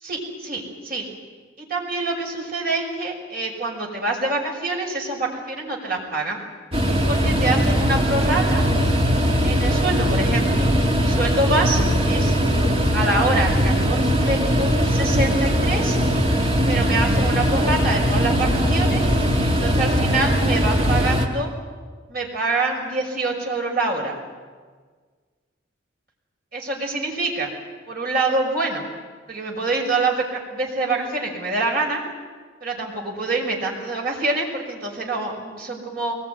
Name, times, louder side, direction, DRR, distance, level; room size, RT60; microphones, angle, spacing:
voice 1, 0.0-1.1 1.6-6.4 7.1-8.6 9.4-10.7 11.0-12.4 12.9-16.0 16.7-19.0 19.5-21.5 22.1-24.1 26.5-27.5 27.9-28.8 29.3-32.0 32.6-36.2, right 2 dB, 50° right, 0 dB, 6.1 m, -25 dB
sound 1, 6.7-21.3, equal, 30° right, 2.1 m, -20 dB
23.5 x 21.0 x 9.6 m, 1.5 s
head